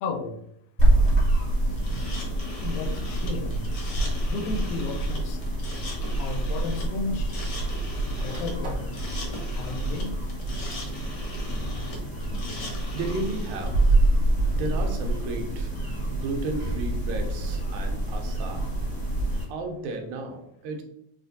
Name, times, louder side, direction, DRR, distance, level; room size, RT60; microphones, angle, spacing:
voice 1, 0.0-0.4 2.6-3.7 4.3-5.4 6.2-7.4 8.1-8.8 9.5-10.2, left 3 dB, 90° left, 7 dB, 2.0 m, -33 dB
sound 1, 0.8-19.4, right 1 dB, 15° left, 0.9 m, -26 dB
sound 2, 1.8-13.7, left 2 dB, 75° left, 0.9 m, -41 dB
sound 3, 3.3-3.6 4.7-4.8 6.2-6.3 6.5-7.6 7.9-9.0, right 1 dB, 55° right, 0.8 m, -44 dB
voice 2, 12.9-14.0 14.5-15.7 16.1-18.7 19.5-20.8, right 3 dB, 80° right, 4 dB, 2.1 m, -33 dB
6.6 x 2.5 x 2.6 m, 0.73 s
omnidirectional pair, 3.3 m